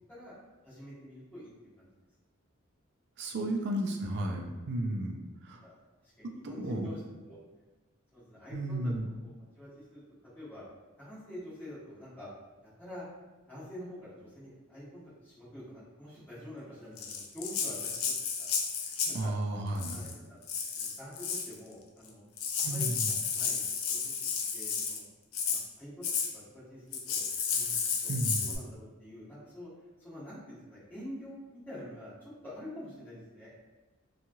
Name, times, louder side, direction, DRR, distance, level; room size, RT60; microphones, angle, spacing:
voice 1, 0.6-1.5 1.8-1.9 3.3-3.4 5.6-5.7 6.0-7.0 7.3-7.4 8.1-8.8 9.2-10.0 10.3-10.6 11.0-12.3 12.6-13.1 13.5-17.9 18.4-19.3 19.9-20.4 20.7-22.2 22.6-22.9 23.3-25.1 25.5-26.1 26.3-27.8 28.0-29.7 30.0-33.6, left 1 dB, 10° left, -11 dB, 1.1 m, -47 dB
voice 2, 3.2-5.2 5.4-5.6 6.2-6.9 8.5-9.1 19.1-20.0 22.6-23.1 28.1-28.4, right 1 dB, 55° right, 2 dB, 0.4 m, -33 dB
Rattle (instrument), 17.0-19.2 19.7-20.1 20.5-21.5 22.1-22.2 22.4-25.0 25.3-25.6 26.0-26.3 26.9-28.6, left 6 dB, 80° left, 0.4 m, -32 dB
2.9 x 2.3 x 2.7 m, 1.1 s
head